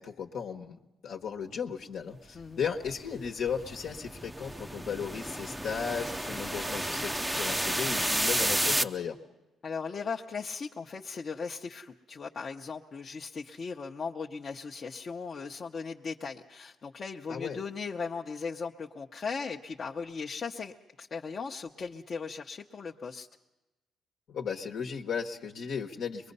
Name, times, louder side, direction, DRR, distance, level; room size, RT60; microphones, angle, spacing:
voice 1, 0.0-9.2 17.3-17.6 24.3-26.3, left 6 dB, 70° left, 1 dB, 1.2 m, -35 dB
sound 1, 2.8-8.8, right 1 dB, 10° right, 0.6 m, -31 dB
voice 2, 9.6-23.3, left 5 dB, 45° left, -1 dB, 0.9 m, -38 dB
23.0 x 21.5 x 5.5 m, 1.0 s
cardioid pair, 90°, 0 cm